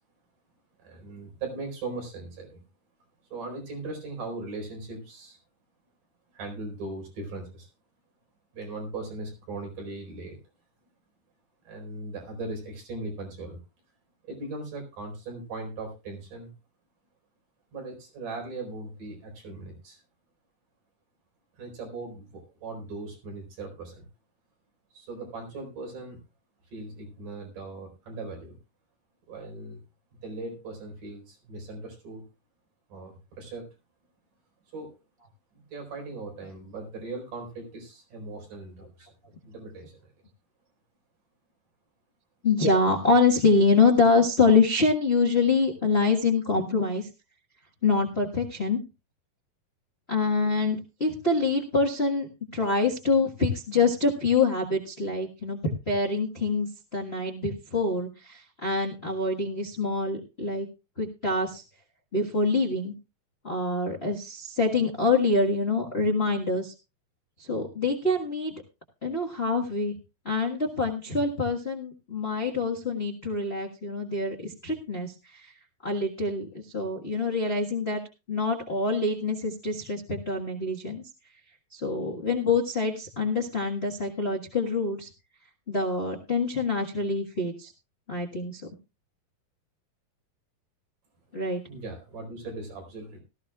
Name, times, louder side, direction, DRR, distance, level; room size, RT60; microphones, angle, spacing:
voice 1, 0.8-2.6 3.3-5.4 6.3-7.7 8.5-10.4 11.6-13.6 14.2-16.5 17.7-20.0 21.6-24.1 24.9-26.2 26.7-28.6 29.3-29.8 30.1-32.2 32.9-33.7 34.7-35.0 35.5-39.1 39.4-40.1 91.7-93.2, right 2 dB, 65° right, 1 dB, 6.0 m, -39 dB
voice 2, 42.4-47.1 47.8-48.8 50.1-60.7 61.0-61.6 62.1-62.9 63.4-66.7 67.4-68.5 69.0-69.9 70.2-75.1 75.8-78.0 78.3-81.0 81.7-85.1 85.7-87.7 88.1-88.6 91.3-91.6, left 3 dB, 85° left, -1 dB, 0.5 m, -25 dB
18.0 x 13.5 x 2.4 m, 0.28 s
omnidirectional pair, 4.0 m